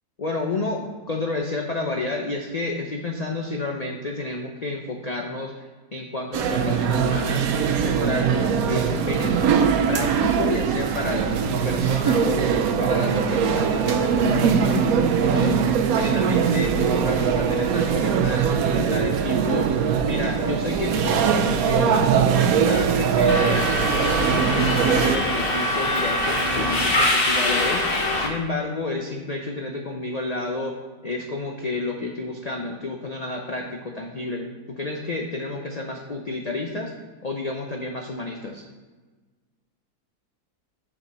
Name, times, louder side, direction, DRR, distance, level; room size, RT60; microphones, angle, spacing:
voice 1, 0.2-7.4 7.8-14.9 15.3-15.6 15.9-19.7 20.0-23.7 24.0-27.9 28.2-30.7 31.0-36.9 37.2-38.6, left 2 dB, 70° left, 1 dB, 0.3 m, -30 dB
sound 1, 6.3-25.2, right 7 dB, 70° right, 1.1 m, -21 dB
Subway metro underground, 23.3-28.3, left 1 dB, 45° left, 1.0 m, -23 dB
6.7 x 5.9 x 4.1 m, 1.3 s
omnidirectional pair, 1.6 m